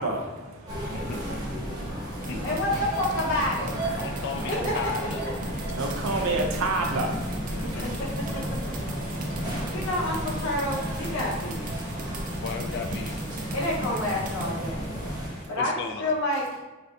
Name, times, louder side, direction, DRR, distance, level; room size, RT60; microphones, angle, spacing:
voice 1, 0.0-2.5 5.5-7.8 8.5-9.9 15.3-15.5, right 2 dB, 90° right, 0.5 m, -32 dB
sound 1, 0.7-15.3, equal, 20° right, 0.7 m, -33 dB
voice 2, 0.9-1.6 2.3-2.6 3.2-3.3 3.9-5.2 7.5-8.1 12.4-13.3 15.6-16.1, left 5 dB, 55° left, 0.3 m, -36 dB
sound 2, 2.2-14.5, right 2 dB, 40° right, 0.4 m, -40 dB
voice 3, 2.4-3.7 4.5-4.7 7.6-8.7 9.7-11.7 13.5-14.9 15.5-16.6, left 1 dB, 80° left, 0.8 m, -29 dB
sound 3, 2.4-15.5, equal, 40° left, 0.9 m, -43 dB
3.2 x 2.6 x 2.4 m
head